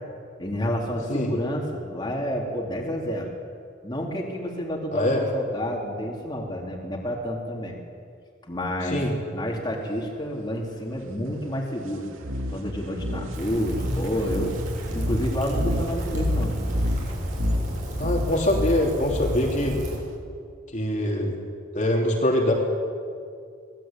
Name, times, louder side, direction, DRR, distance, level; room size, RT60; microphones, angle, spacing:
voice 1, 0.4-3.3 3.8-7.7 8.5-9.0 9.3-12.1 12.5-14.6 14.9-16.7, equal, 20° left, -1 dB, 3.5 m, -29 dB
voice 2, 4.9-5.2 8.8-9.1 18.0-19.8 20.7-21.4 21.7-22.5, left 1 dB, 35° left, -1 dB, 3.4 m, -23 dB
sound 1, 12.2-20.2, equal, 80° right, 2.7 m, -29 dB
Rain, 13.3-20.0, equal, 40° right, 7.1 m, -34 dB
25.0 x 19.5 x 9.1 m, 2.3 s
head